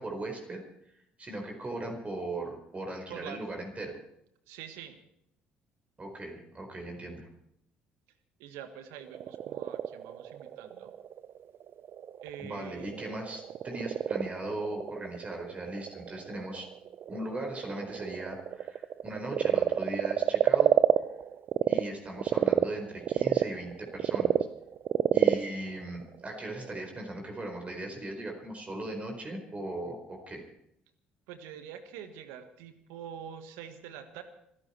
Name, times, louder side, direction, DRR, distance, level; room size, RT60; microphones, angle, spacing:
voice 1, 0.0-4.0 6.0-7.3 12.4-16.7 17.1-20.7 21.7-24.4 25.1-30.5, right 1 dB, 30° right, 3 dB, 4.6 m, -38 dB
voice 2, 3.1-3.4 4.5-5.0 8.4-10.9 12.2-12.9 31.3-34.2, right 9 dB, 75° right, 9 dB, 1.6 m, -45 dB
Frog, 8.9-21.8 22.2-26.8, right 10 dB, 55° right, 0.6 m, -29 dB
26.0 x 11.0 x 4.5 m, 0.75 s
hypercardioid pair, 60°, 5 cm